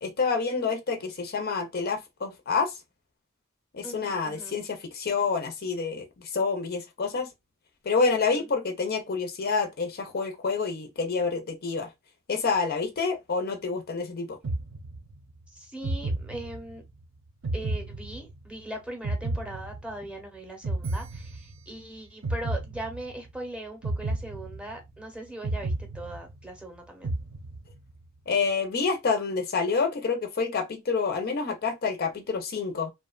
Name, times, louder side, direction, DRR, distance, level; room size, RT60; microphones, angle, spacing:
voice 1, 0.0-2.7 3.7-6.1 6.3-7.3 7.8-11.9 12.3-14.4 28.3-32.9, left 4 dB, 50° left, 0.5 m, -28 dB
voice 2, 3.8-4.6 8.3-8.5 15.5-16.8 17.5-27.1, right 1 dB, 5° right, 0.7 m, -40 dB
sound 1, 14.4-15.3 15.8-16.9 17.4-18.6 19.0-20.2 20.6-21.8 22.2-23.3 23.8-25.0 25.4-26.6 27.0-27.9, right 2 dB, 65° right, 0.6 m, -32 dB
2.7 x 2.1 x 2.3 m
head